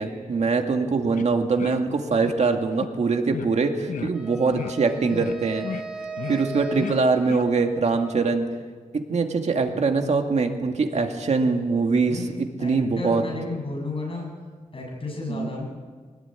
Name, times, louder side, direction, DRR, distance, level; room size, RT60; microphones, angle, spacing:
voice 1, 0.0-5.7 6.3-8.5 8.9-12.3 12.6-13.2 15.3-15.5, right 4 dB, 60° right, 4 dB, 2.1 m, -23 dB
sound 1, 1.1-1.3 1.5-1.8 2.2-2.4 2.7-2.9 3.3-3.5 3.9-4.1 4.5-4.7 5.1-5.4 5.6-5.8 6.2-6.4 6.7-7.0 7.2-7.4, left 7 dB, 80° left, 1.0 m, -33 dB
Wind instrument woodwind instrument, 4.1-8.3, right 3 dB, 5° right, 3.8 m, -38 dB
voice 2, 12.6-14.3 14.7-15.6, left 2 dB, 45° left, 0 dB, 7.6 m, -32 dB
24.5 x 19.0 x 9.0 m, 1.6 s
wide cardioid pair, 155°, 13 cm